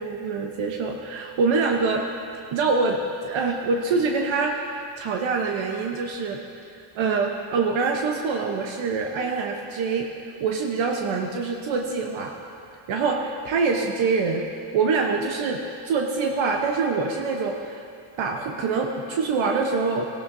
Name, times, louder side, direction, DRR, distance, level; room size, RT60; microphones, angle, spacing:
voice 1, 0.0-2.0 2.5-6.4 6.9-12.3 12.9-14.5 14.7-15.6 15.8-17.8 18.2-20.1, right 4 dB, 65° right, 1 dB, 1.0 m, -25 dB
17.0 x 12.0 x 2.7 m, 2.5 s
cardioid pair, 105°, 50 cm